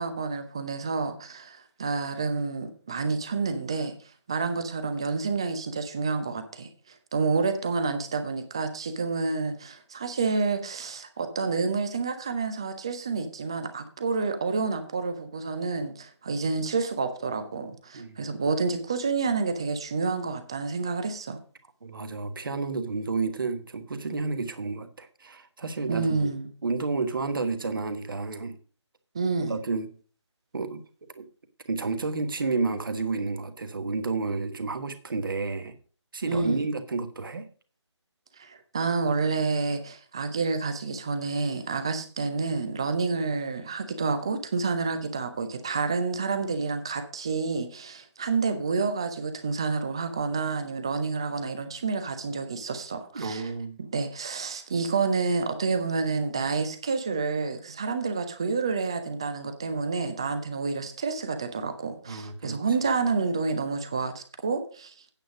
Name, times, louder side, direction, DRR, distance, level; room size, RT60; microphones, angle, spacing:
voice 1, 0.0-3.9 4.3-6.7 7.1-21.4 25.9-26.5 29.1-29.5 36.2-36.7 38.4-53.5 53.8-64.9, right 4 dB, 10° right, 9 dB, 0.4 m, -29 dB
voice 2, 17.9-18.3 21.8-26.3 26.6-28.6 29.5-29.9 30.5-30.8 31.2-31.3 31.7-35.7 36.1-37.5 53.1-53.8 62.0-62.6, right 3 dB, 45° right, 9 dB, 1.3 m, -31 dB
8.9 x 7.7 x 4.9 m, 0.39 s
figure-of-eight pair, 150°, 15 cm